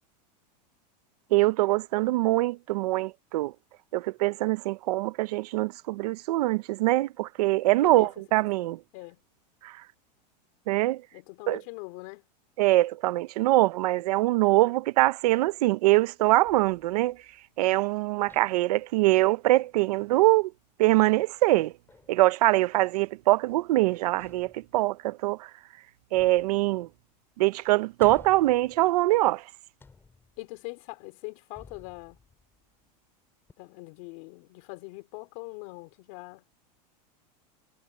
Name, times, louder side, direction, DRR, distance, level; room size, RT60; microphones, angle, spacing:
voice 1, 1.3-3.5 3.9-8.8 9.6-9.7 10.7-11.0 11.5-11.6 12.6-17.2 17.6-20.5 20.8-21.7 22.1-25.5 26.1-26.9 27.4-29.4, right 18 dB, 65° right, 0.9 m, -23 dB
voice 2, 11.1-12.2 30.4-32.2 33.6-36.4, left 27 dB, 50° left, 3.0 m, -42 dB
sound 1, 16.4-17.9 18.3-18.8 20.1-20.5 21.9-22.2 24.2-25.1 26.1-27.2 27.5-27.6 28.0-29.4 29.8-30.6 31.6-32.9 33.5-33.6, left 4 dB, 10° left, 6.8 m, -54 dB
supercardioid pair, 160°, 21 cm